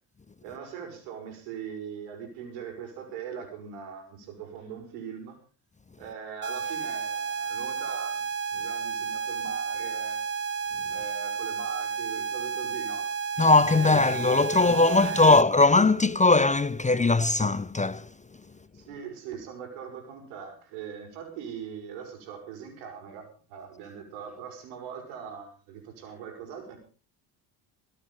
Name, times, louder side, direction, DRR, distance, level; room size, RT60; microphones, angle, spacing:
voice 1, 0.4-5.4 6.0-10.2 10.9-13.1 13.7-15.4 18.7-26.8, right 7 dB, 80° right, 6.0 m, -41 dB
sound 1, 6.4-15.4, right 6 dB, 25° right, 1.2 m, -32 dB
voice 2, 13.4-18.1, left 3 dB, 15° left, 0.7 m, -20 dB
23.5 x 9.2 x 5.6 m
hypercardioid pair, 65°, 48 cm